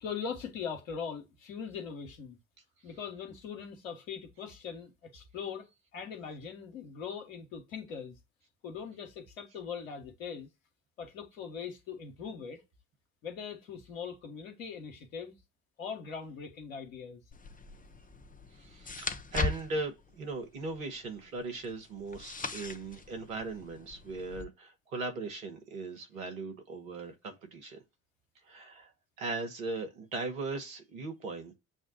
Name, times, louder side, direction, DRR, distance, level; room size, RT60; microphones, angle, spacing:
voice 1, 0.0-2.4 2.8-5.7 5.9-8.2 8.6-10.5 11.0-12.6 13.2-15.3 15.8-17.2, left 6 dB, 80° left, 1.3 m, -41 dB
sound 1, 17.3-24.4, left 3 dB, 20° left, 0.8 m, -40 dB
voice 2, 18.5-27.8 28.5-28.9 29.2-31.5, right 3 dB, 85° right, 1.3 m, -38 dB
7.1 x 2.4 x 2.8 m
hypercardioid pair, 50°, 40 cm